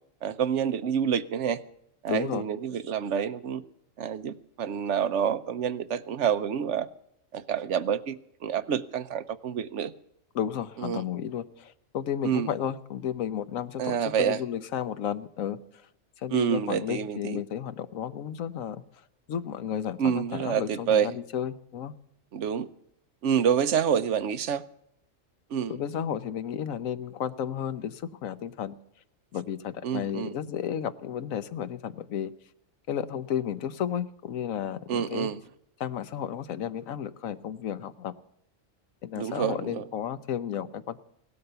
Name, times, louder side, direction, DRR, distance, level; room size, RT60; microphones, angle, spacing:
voice 1, 0.2-1.6 2.0-3.6 4.0-6.9 7.3-8.2 8.4-9.9 10.8-11.0 12.2-12.5 13.8-14.4 16.3-17.4 20.0-21.1 22.3-22.7 23.2-24.6 25.5-25.8 29.8-30.3 34.9-35.4 39.2-39.8, right 8 dB, 65° right, 12 dB, 1.1 m, -27 dB
voice 2, 2.1-2.5 10.3-15.6 16.2-18.8 19.3-21.9 25.7-28.8 29.3-32.3 32.9-35.3 35.8-38.1 39.0-41.0, left 9 dB, 85° left, 13 dB, 1.2 m, -33 dB
17.0 x 12.5 x 6.8 m, 0.75 s
omnidirectional pair, 1.4 m